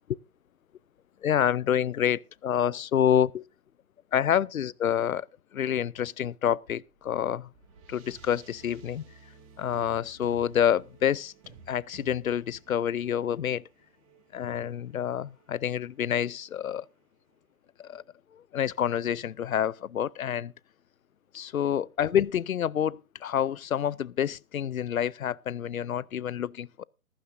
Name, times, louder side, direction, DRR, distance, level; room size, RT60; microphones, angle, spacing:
voice 1, 1.2-3.4 4.1-5.3 5.5-7.5 7.9-9.0 9.6-11.3 11.7-13.6 14.3-16.9 17.8-18.0 18.5-20.5 21.3-26.8, left 9 dB, 70° left, 0.6 m, -28 dB
sound 1, 6.7-17.4, right 4 dB, 25° right, 2.3 m, -55 dB
15.0 x 14.5 x 2.6 m
figure-of-eight pair, 150°, 43 cm